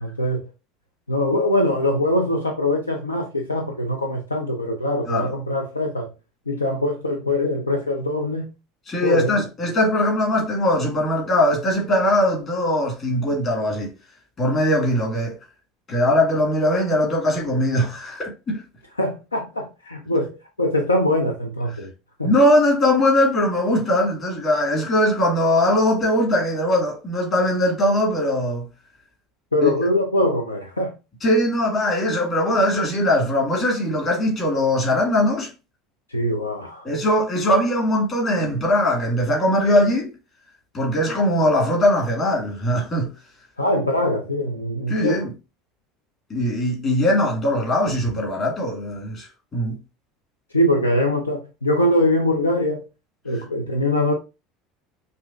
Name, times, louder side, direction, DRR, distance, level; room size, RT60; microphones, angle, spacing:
voice 1, 0.0-0.5 1.1-6.1 6.5-8.5 9.0-9.3 19.0-21.9 22.2-22.3 29.5-30.9 36.1-36.9 43.6-45.3 50.5-52.9 53.2-54.1, left 1 dB, 80° left, 0.4 m, -22 dB
voice 2, 8.9-13.9 14.4-15.3 15.9-18.6 22.2-28.7 29.6-29.7 31.2-35.5 36.8-40.1 40.7-43.1 44.9-45.3 46.3-49.8, left 1 dB, 35° left, 1.9 m, -20 dB
5.5 x 2.5 x 2.4 m
figure-of-eight pair, 70°, 0 cm